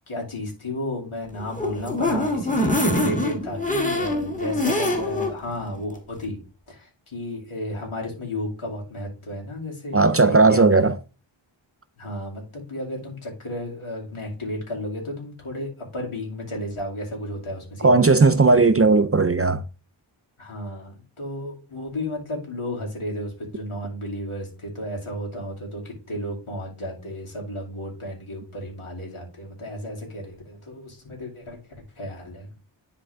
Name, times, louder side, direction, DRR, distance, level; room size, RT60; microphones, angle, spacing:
voice 1, 0.1-6.4 6.7-10.8 12.0-18.1 20.4-31.6 32.0-32.5, left 1 dB, 80° left, 2.6 m, -33 dB
sound 1, 1.3-5.3 5.7-5.8 6.1-6.2, left 1 dB, 15° left, 1.4 m, -24 dB
voice 2, 9.9-11.0 17.8-19.6, right 3 dB, 30° right, 0.4 m, -16 dB
10.0 x 3.6 x 3.5 m
wide cardioid pair, 60°, 49 cm